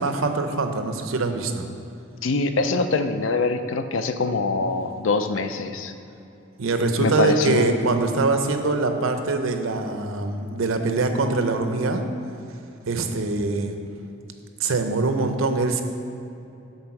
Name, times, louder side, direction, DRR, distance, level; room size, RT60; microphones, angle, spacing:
voice 1, 0.0-1.7 6.6-12.0 12.9-13.8 14.6-15.8, right 3 dB, 85° right, 6 dB, 0.6 m, -23 dB
voice 2, 2.2-5.9 7.0-7.8, left 3 dB, 70° left, 9 dB, 0.5 m, -24 dB
8.0 x 4.3 x 5.8 m, 2.8 s
head